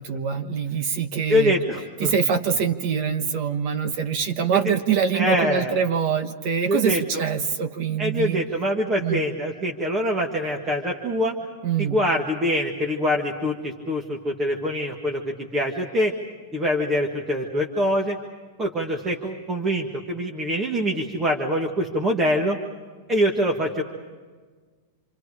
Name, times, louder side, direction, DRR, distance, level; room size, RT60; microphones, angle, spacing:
voice 1, 0.0-1.5 2.0-8.4 9.0-9.2 11.6-12.0, right 7 dB, 35° right, 8 dB, 1.2 m, -24 dB
voice 2, 1.3-2.1 4.5-4.7 5.1-5.7 6.7-7.2 8.0-11.4 11.8-16.1 16.5-18.2 18.6-22.6 23.1-23.8, equal, 15° right, 0 dB, 1.6 m, -24 dB
28.0 x 26.0 x 4.9 m, 1.4 s
supercardioid pair, 180°, 0 cm